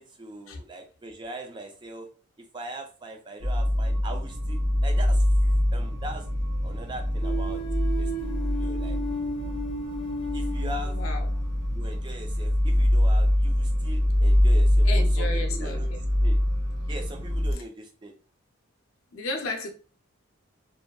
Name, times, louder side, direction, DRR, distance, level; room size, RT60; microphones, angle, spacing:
voice 1, 0.0-2.1 2.4-5.2 5.7-6.3 6.6-7.6 8.0-8.1 8.5-9.0 10.3-11.0 11.7-15.9 16.2-16.4 16.9-18.1, right 1 dB, 20° right, 0.3 m, -40 dB
sound 1, 3.4-17.5, left 1 dB, 65° right, 0.8 m, -24 dB
sound 2, 7.2-11.5, right 1 dB, 25° left, 0.6 m, -34 dB
voice 2, 10.8-11.3 14.8-16.0 17.5-17.6 19.1-19.7, left 2 dB, 70° left, 0.4 m, -34 dB
2.5 x 2.3 x 2.2 m
head